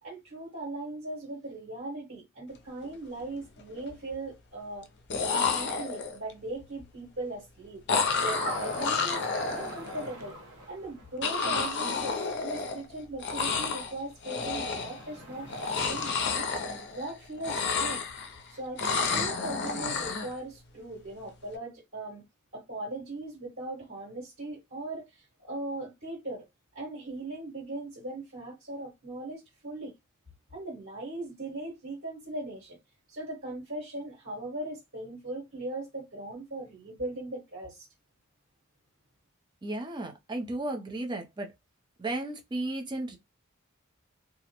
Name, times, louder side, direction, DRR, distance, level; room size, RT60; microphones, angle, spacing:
voice 1, 0.0-4.9 5.3-7.8 8.2-9.2 9.5-10.3 10.7-18.0 18.5-22.2 22.5-26.5 26.7-29.9 30.5-32.8 33.1-37.9, right 2 dB, 60° right, 1.4 m, -39 dB
sound 1, 2.7-2.9 3.2-3.8 4.8-4.9 5.1-6.3 7.9-10.1 11.2-12.9 13.2-13.9 14.2-15.0 15.5-17.1 17.4-18.4 18.8-20.3, left 4 dB, 50° left, 0.5 m, -30 dB
sound 2, 8.1-11.4 14.1-16.1, right 1 dB, 75° right, 0.9 m, -42 dB
voice 2, 39.6-41.5 42.0-43.2, right 2 dB, 20° right, 0.5 m, -34 dB
2.3 x 2.1 x 2.9 m
head